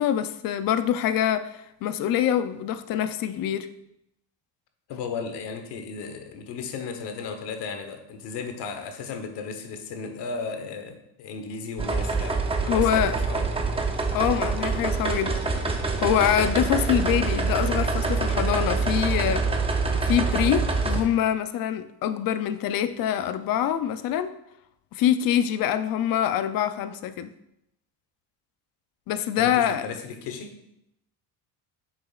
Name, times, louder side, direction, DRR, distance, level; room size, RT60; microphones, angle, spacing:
voice 1, 0.0-3.7 12.7-13.1 14.1-15.7 16.0-19.4 20.0-24.3 24.9-27.3 29.1-29.8, left 10 dB, 55° left, 11 dB, 0.6 m, -25 dB
voice 2, 4.9-13.5 29.4-30.6, left 5 dB, 75° left, 6 dB, 1.1 m, -35 dB
sound 1, 11.8-21.0, right 3 dB, 15° right, 0.6 m, -25 dB
8.6 x 6.2 x 2.4 m, 0.82 s
cardioid pair, 140°, 41 cm